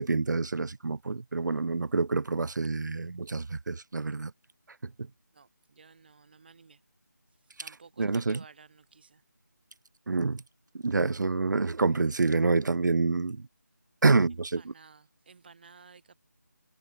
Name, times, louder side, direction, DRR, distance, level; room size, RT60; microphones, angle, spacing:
voice 1, 0.0-4.3 4.8-4.9 8.0-8.4 10.1-10.4 10.8-13.5 14.0-14.7, right 3 dB, 80° right, 0.4 m, -27 dB
voice 2, 5.3-6.8 7.5-9.2 14.6-16.2, right 5 dB, 35° right, 3.7 m, -55 dB
figure-of-eight pair, 170°, 10 cm